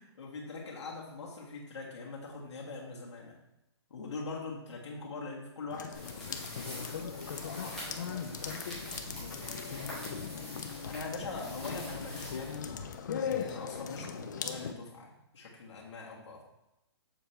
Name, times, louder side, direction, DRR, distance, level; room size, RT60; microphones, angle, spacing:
voice 1, 0.0-3.3 3.9-6.7 10.8-16.4, left 3 dB, 85° left, -4 dB, 1.6 m, -42 dB
sound 1, 5.7-14.7, left 7 dB, 40° left, 0.4 m, -39 dB
sound 2, 5.9-13.1, left 1 dB, 5° left, 1.3 m, -45 dB
voice 2, 7.7-10.4, right 4 dB, 25° right, 3 dB, 0.7 m, -53 dB
6.9 x 4.3 x 3.3 m, 0.90 s
hypercardioid pair, 175°, 14 cm